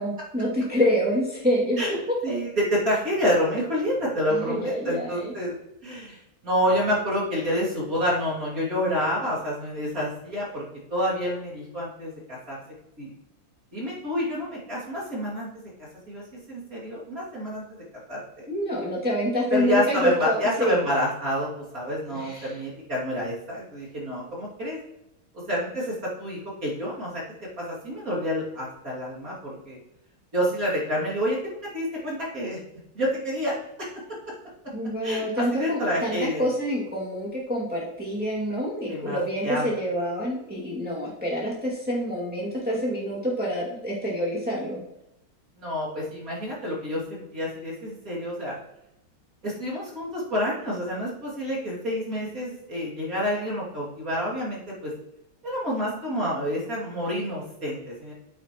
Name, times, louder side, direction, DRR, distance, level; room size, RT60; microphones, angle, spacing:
voice 1, 0.0-1.8 4.3-5.3 18.5-20.8 22.1-22.6 34.7-44.8, equal, 5° right, -6 dB, 2.1 m, -27 dB
voice 2, 2.2-5.5 5.8-10.6 10.9-12.6 13.0-13.1 13.7-15.5 15.8-18.4 19.5-24.8 25.5-27.2 27.6-29.8 30.3-32.6 32.9-33.5 33.8-34.0 35.0-36.4 38.9-39.2 39.4-39.8 45.6-48.6 49.4-54.9 55.4-58.1, equal, 40° right, -7 dB, 3.0 m, -28 dB
9.3 x 8.8 x 3.0 m, 0.85 s
omnidirectional pair, 2.4 m